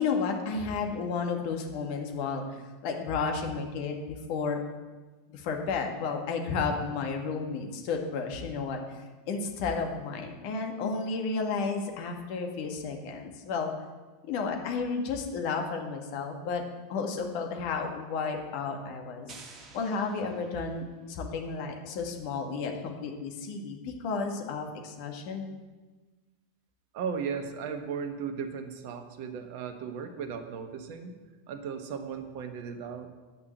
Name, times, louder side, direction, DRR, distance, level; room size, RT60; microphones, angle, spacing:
voice 1, 0.0-4.6 5.3-9.0 9.3-13.7 14.2-16.6 16.9-19.3 19.7-25.5, left 4 dB, 55° left, 3 dB, 2.0 m, -32 dB
sound 1, 19.3-21.1, right 4 dB, 35° right, 1.8 m, -51 dB
voice 2, 26.9-31.2 31.5-33.1, right 6 dB, 55° right, 8 dB, 1.3 m, -36 dB
9.5 x 5.9 x 7.9 m, 1.3 s
hypercardioid pair, 90°, 0 cm